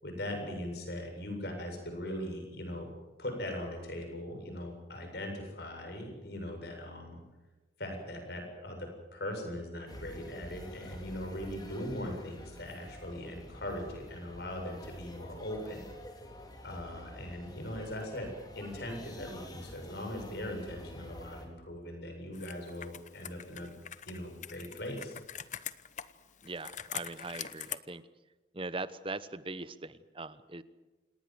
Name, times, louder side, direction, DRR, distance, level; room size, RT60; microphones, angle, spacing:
voice 1, 0.0-2.9 3.2-7.2 7.8-15.9 16.6-23.7 24.1-25.2, left 1 dB, 55° left, 3 dB, 7.7 m, -40 dB
sound 1, 9.9-21.5, left 1 dB, 20° left, 3.8 m, -49 dB
Computer keyboard, 22.3-27.8, left 10 dB, 40° left, 0.9 m, -44 dB
voice 2, 26.4-28.0 28.5-30.6, right 3 dB, 25° right, 14 dB, 1.0 m, -40 dB
28.0 x 19.0 x 7.9 m, 1.2 s
head